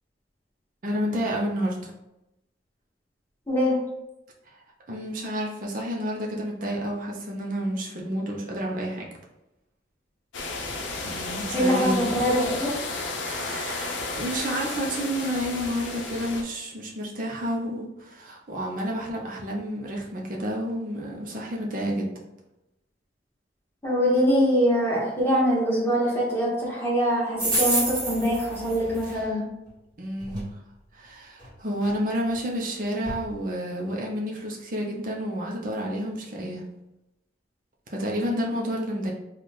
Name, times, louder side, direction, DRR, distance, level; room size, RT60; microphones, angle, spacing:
voice 1, 0.8-1.9 4.5-4.6 4.9-9.1 11.0-12.3 13.3-22.1 29.0-29.4 30.0-30.4 30.9-36.6 37.9-39.1, equal, 45° right, -2 dB, 0.7 m, -30 dB
voice 2, 3.5-3.8 11.5-12.7 23.8-29.5, equal, 10° left, -7 dB, 1.2 m, -23 dB
sound 1, 10.3-16.4, left 3 dB, 80° left, 0.6 m, -33 dB
sound 2, 27.4-29.2 30.2-30.4 31.4-31.5 31.8-31.9 32.4-32.5 33.0-33.2, right 1 dB, 20° right, 1.4 m, -28 dB
3.1 x 2.4 x 4.1 m, 0.90 s
head